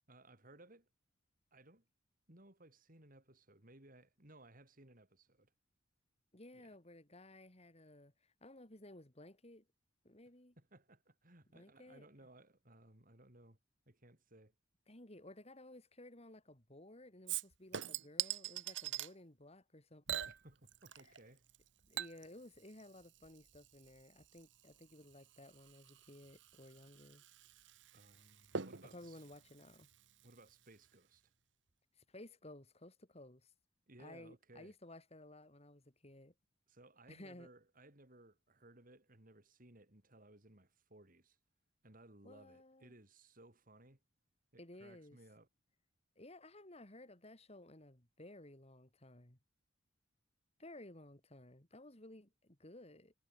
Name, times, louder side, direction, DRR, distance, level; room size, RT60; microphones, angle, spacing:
voice 1, 0.1-0.9 1.5-1.8 2.3-5.5 6.5-6.8 10.6-13.6 13.9-14.5 20.2-21.4 27.9-29.2 30.2-31.3 33.9-34.8 36.7-41.4 41.8-44.0 44.5-45.5, right 1 dB, 45° right, 4.1 m, -61 dB
voice 2, 6.3-9.6 10.0-10.6 11.5-12.1 14.9-20.2 21.8-27.2 28.9-29.9 32.0-33.5 34.0-36.3 37.1-37.5 42.2-42.9 44.6-45.2 46.2-49.4 50.6-53.1, left 1 dB, 30° left, 3.1 m, -56 dB
Chink clink / Liquid, 17.3-19.1 20.1-21.2 21.5-30.5 30.9-31.0, right 9 dB, 65° right, 1.3 m, -45 dB
head